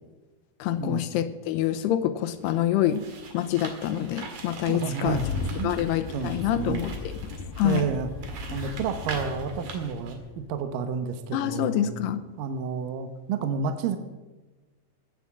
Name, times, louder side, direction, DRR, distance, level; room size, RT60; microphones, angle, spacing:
voice 1, 0.6-3.1 3.3-5.2 5.6-7.2 7.6-7.9 11.3-12.2, left 11 dB, 90° left, 9 dB, 2.8 m, -26 dB
sound 1, 2.4-10.1, right 5 dB, 55° right, 2.9 m, -42 dB
voice 2, 4.7-5.8 6.1-6.9 7.6-8.1 8.5-11.9 12.4-14.0, right 6 dB, 70° right, 8 dB, 2.3 m, -30 dB
Engine starting, 5.1-10.6, left 5 dB, 65° left, 2.3 m, -36 dB
18.0 x 8.5 x 7.4 m, 1.2 s
omnidirectional pair, 4.8 m